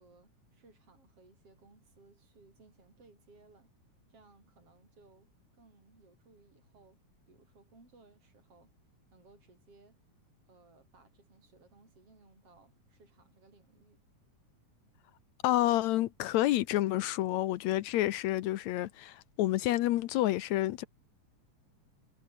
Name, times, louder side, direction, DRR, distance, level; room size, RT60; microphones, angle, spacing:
voice 1, 0.0-3.7 4.1-5.3 5.6-8.7 9.1-10.0 10.5-14.0, right 3 dB, 40° right, 8.7 m, -62 dB
voice 2, 15.4-20.8, left 15 dB, 75° left, 1.8 m, -29 dB
omnidirectional pair, 3.9 m